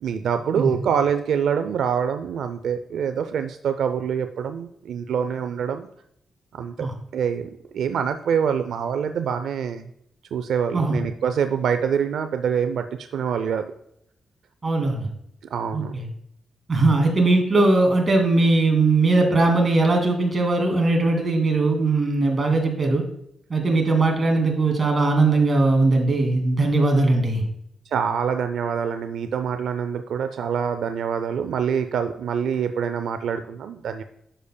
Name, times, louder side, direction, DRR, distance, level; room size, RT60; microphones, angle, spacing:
voice 1, 0.0-5.9 6.5-6.9 7.1-9.9 10.3-13.7 15.5-15.9 27.9-34.0, right 7 dB, 80° right, 9 dB, 0.4 m, -25 dB
voice 2, 14.6-15.1 15.7-16.1 16.7-23.0 23.5-27.4, right 2 dB, 30° right, 2 dB, 2.2 m, -20 dB
10.0 x 6.9 x 2.2 m, 0.75 s
cardioid pair, 100°, 0 cm